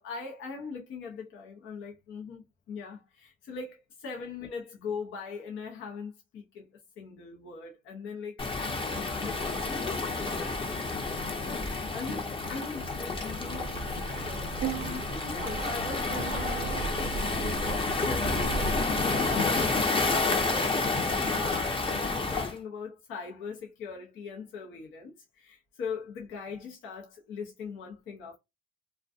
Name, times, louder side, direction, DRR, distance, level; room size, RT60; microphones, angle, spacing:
voice 1, 0.0-18.7 18.9-20.8 21.3-28.4, left 5 dB, 85° left, 0.7 m, -41 dB
Waves surf, 8.4-22.5, left 3 dB, 25° left, 0.6 m, -30 dB
sound 1, 13.5-19.4, right 5 dB, 60° right, 0.5 m, -37 dB
2.4 x 2.2 x 2.5 m
cardioid pair, 90°, 20 cm